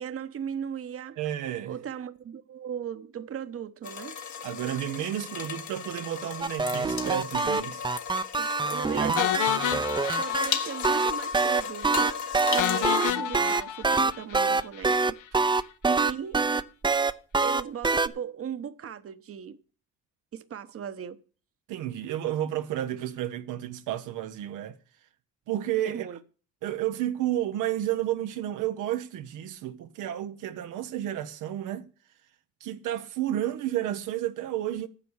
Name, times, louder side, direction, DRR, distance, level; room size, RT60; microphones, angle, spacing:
voice 1, 0.0-1.2 1.7-4.2 8.3-9.4 10.2-12.1 12.5-15.2 15.9-16.4 17.4-19.6 20.3-21.2 25.9-26.2, right 8 dB, 50° right, 1.0 m, -37 dB
voice 2, 1.2-1.7 4.4-7.9 8.9-9.2 21.7-24.8 25.5-26.1 26.6-31.9 32.6-34.9, right 12 dB, 85° right, 0.8 m, -31 dB
sound 1, 3.8-13.1, left 7 dB, 65° left, 1.8 m, -35 dB
sound 2, 6.4-10.5 10.8-18.1, right 4 dB, 15° right, 0.6 m, -25 dB
sound 3, 9.2-11.1 11.3-11.5 11.8-11.9 12.6-14.9, left 11 dB, 85° left, 0.9 m, -30 dB
10.0 x 6.9 x 8.0 m
cardioid pair, 90°, 30 cm